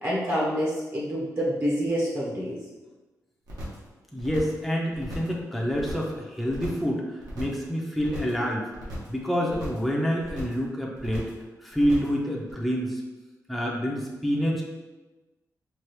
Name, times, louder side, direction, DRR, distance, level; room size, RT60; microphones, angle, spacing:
voice 1, 0.0-2.6, equal, 40° right, -6 dB, 1.0 m, -27 dB
sound 1, 3.5-3.9 4.2-4.6 4.9-5.4 5.7-6.2 6.5-6.9 7.2-7.7 8.0-8.4 8.7-9.2 9.5-9.9 10.2-10.7 11.0-11.4 11.7-12.2 12.5-12.6, equal, 70° right, 1.3 m, -39 dB
voice 2, 4.1-8.7 9.1-11.3 11.6-13.0 13.5-14.6, equal, ahead, -3 dB, 0.6 m, -27 dB
4.6 x 2.3 x 3.1 m, 1.1 s
wide cardioid pair, 125°, 6 cm